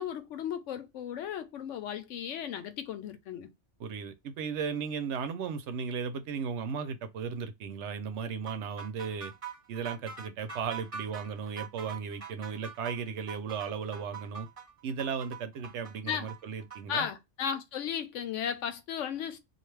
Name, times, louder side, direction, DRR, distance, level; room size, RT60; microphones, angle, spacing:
voice 1, 0.0-3.5 16.0-16.3 16.9-19.4, left 8 dB, 75° left, 0.9 m, -35 dB
voice 2, 3.8-9.3 9.7-14.5 14.8-17.1, right 6 dB, 70° right, 0.8 m, -36 dB
sound 1, 8.5-17.0, right 6 dB, 35° right, 0.7 m, -44 dB
2.5 x 2.3 x 3.1 m
omnidirectional pair, 1.3 m